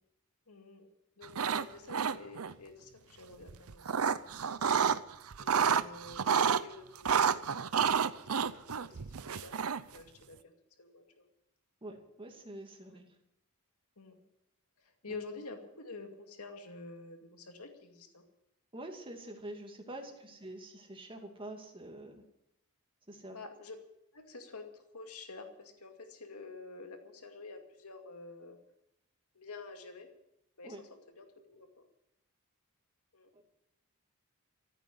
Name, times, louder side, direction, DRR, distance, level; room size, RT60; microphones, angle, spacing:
voice 1, 0.5-0.9 1.2-4.5 5.4-7.4 8.1-10.5 10.8-11.2 12.9-13.0 14.0-14.2 14.8-18.2 20.1-20.2 23.3-23.8 24.1-28.6 29.3-30.1 30.6-30.9 31.2-31.8 33.1-33.3, left 3 dB, 80° left, 5 dB, 2.3 m, -49 dB
sound 1, 1.2-1.6 1.9-2.5 3.5-5.0 5.3-6.6 7.0-10.0, right 7 dB, 70° right, 0.6 m, -29 dB
voice 2, 11.8-13.1 18.7-22.2 23.1-23.4 30.6-30.8 33.3-33.4, right 1 dB, 25° right, 3 dB, 2.5 m, -46 dB
14.5 x 9.1 x 9.9 m, 0.81 s
head